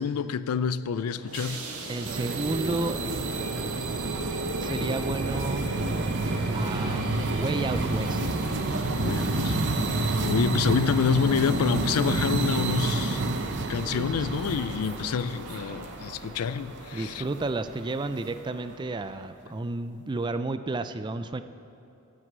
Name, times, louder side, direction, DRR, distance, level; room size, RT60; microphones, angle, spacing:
voice 1, 0.0-1.6 9.0-9.6 10.2-13.2 13.7-17.2, left 6 dB, 80° left, 15 dB, 0.4 m, -27 dB
sound 1, 0.9-19.3, right 1 dB, 90° right, 1.9 m, -40 dB
voice 2, 1.9-3.0 4.6-5.7 6.5-7.0 7.3-8.4 13.9-14.4 16.9-21.4, right 3 dB, 20° right, 10 dB, 0.4 m, -32 dB
sound 2, 2.0-17.3, right 2 dB, 55° right, 0.7 m, -29 dB
13.5 x 6.2 x 7.9 m, 2.8 s
head